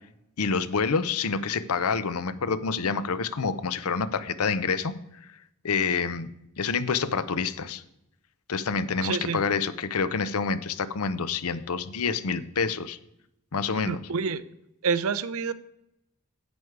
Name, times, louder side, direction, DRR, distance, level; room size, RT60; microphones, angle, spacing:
voice 1, 0.4-4.9 5.6-6.3 6.6-7.8 8.5-13.0 13.5-14.1, left 5 dB, 80° left, 14 dB, 0.7 m, -27 dB
voice 2, 9.0-9.4 13.8-14.4 14.8-15.5, right 5 dB, 70° right, 15 dB, 0.6 m, -28 dB
10.5 x 8.1 x 4.7 m, 0.83 s
head